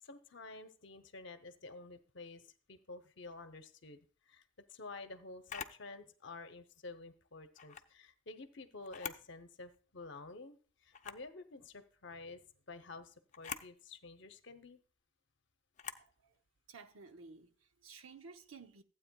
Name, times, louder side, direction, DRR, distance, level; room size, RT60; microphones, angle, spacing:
voice 1, 0.0-4.0 4.3-4.4 4.7-14.8, left 3 dB, 60° left, 0.8 m, -50 dB
Camera, 5.5-5.8 7.5-7.9 8.8-9.3 9.7-9.8 10.9-11.3 13.3-13.7 15.7-16.1, left 7 dB, 35° left, 0.5 m, -45 dB
voice 2, 16.0-16.4 16.7-18.8, right 4 dB, 90° right, 0.8 m, -54 dB
15.0 x 8.6 x 2.3 m
head